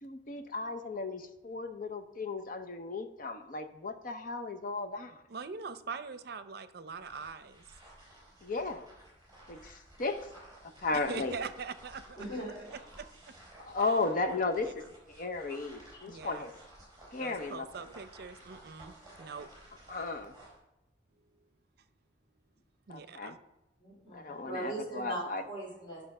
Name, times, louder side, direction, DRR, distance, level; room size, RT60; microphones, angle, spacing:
voice 1, 0.0-5.2 8.4-8.9 9.5-10.3 10.8-11.3 13.6-16.5 17.1-17.9 19.9-20.3 22.9-23.4 24.1-25.4, left 3 dB, 50° left, 8 dB, 0.8 m, -35 dB
voice 2, 5.3-7.7 10.9-12.2 13.0-13.3 13.8-13.9 16.1-16.4 17.2-19.5 22.9-23.4, right 5 dB, 60° right, 12 dB, 0.6 m, -42 dB
sound 1, 6.9-20.6, right 1 dB, 20° right, 4.0 m, -54 dB
voice 3, 12.2-12.7 15.9-16.0 23.8-26.0, right 1 dB, 25° left, -4 dB, 3.6 m, -40 dB
10.0 x 5.8 x 5.4 m, 0.90 s
head